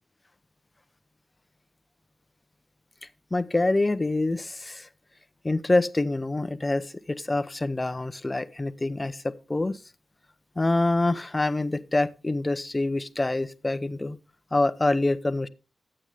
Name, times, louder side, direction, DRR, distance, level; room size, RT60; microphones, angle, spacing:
voice 1, 3.3-4.9 5.4-9.8 10.6-14.2 14.5-15.5, left 2 dB, 25° left, 14 dB, 0.8 m, -26 dB
12.5 x 8.8 x 3.5 m, 0.31 s
cardioid pair, 55°, 0 cm